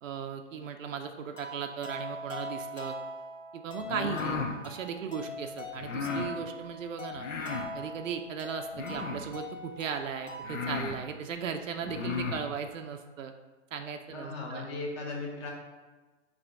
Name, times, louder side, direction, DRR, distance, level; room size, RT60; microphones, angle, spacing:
voice 1, 0.0-3.0 3.5-7.3 7.7-13.3 13.7-14.7, right 6 dB, 80° right, 6 dB, 0.5 m, -37 dB
sound 1, 1.4-10.7, equal, 70° left, 1.3 m, -42 dB
sound 2, 3.8-4.6 5.8-6.3 7.2-7.7 8.7-9.3 10.0-10.1 10.4-11.0 11.8-12.4, left 5 dB, 85° left, 0.7 m, -34 dB
voice 2, 14.1-15.5, left 3 dB, 20° left, -1 dB, 0.7 m, -37 dB
4.8 x 2.8 x 3.5 m, 1.3 s
hypercardioid pair, 145°, 38 cm